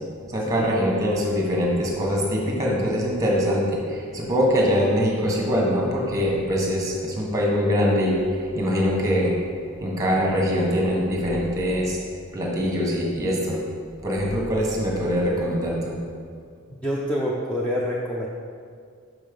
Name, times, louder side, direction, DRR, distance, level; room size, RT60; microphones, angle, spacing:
voice 1, 0.3-9.3 9.8-12.0 12.3-13.6 14.0-16.0, equal, 15° right, -2 dB, 1.4 m, -23 dB
voice 2, 16.8-18.3, equal, 5° left, -5 dB, 0.5 m, -26 dB
6.2 x 5.5 x 5.2 m, 2.2 s
head